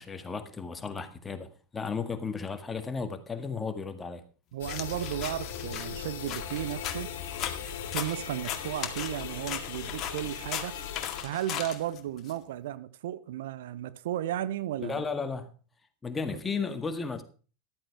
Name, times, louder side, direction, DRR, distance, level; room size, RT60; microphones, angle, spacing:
voice 1, 0.0-4.2 14.8-15.5 16.0-17.2, left 5 dB, 15° left, 1.8 m, -34 dB
voice 2, 4.5-7.1 7.9-10.8 11.2-15.0, right 12 dB, 65° right, 0.7 m, -34 dB
sound 1, 4.6-11.2, left 7 dB, 65° left, 2.3 m, -39 dB
sound 2, 4.7-12.3, left 9 dB, 40° left, 1.9 m, -38 dB
14.0 x 12.5 x 3.5 m
figure-of-eight pair, 80°, 0 cm